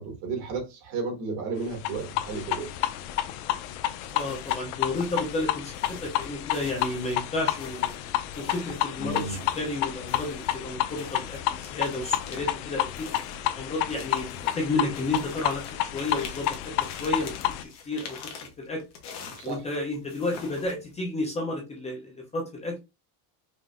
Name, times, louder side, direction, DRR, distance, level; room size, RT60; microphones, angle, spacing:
voice 1, 0.0-2.7 9.0-9.4 19.4-19.6, right 4 dB, 75° right, 2.3 m, -33 dB
sound 1, 1.7-17.6, left 14 dB, 75° left, 0.6 m, -30 dB
sound 2, 4.0-4.7 4.9-9.8 10.1-21.0, left 6 dB, 35° left, 0.9 m, -45 dB
voice 2, 4.1-7.9 8.4-13.1 13.5-17.3 17.6-18.2 18.6-18.8 19.4-22.8, left 2 dB, 15° left, 0.5 m, -32 dB
5.2 x 2.5 x 2.4 m
cardioid pair, 170°, 47 cm